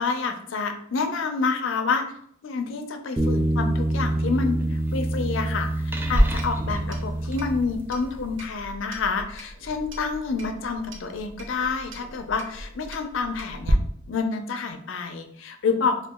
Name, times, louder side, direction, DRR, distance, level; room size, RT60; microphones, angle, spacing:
voice 1, 0.0-2.1 2.4-13.8 14.1-16.1, left 4 dB, 65° left, 6 dB, 0.4 m, -28 dB
sound 1, 3.2-8.1, right 1 dB, 10° right, 0.3 m, -26 dB
Clock, 6.0-13.7, equal, 65° right, 0.5 m, -32 dB
2.9 x 2.4 x 3.5 m, 0.65 s
head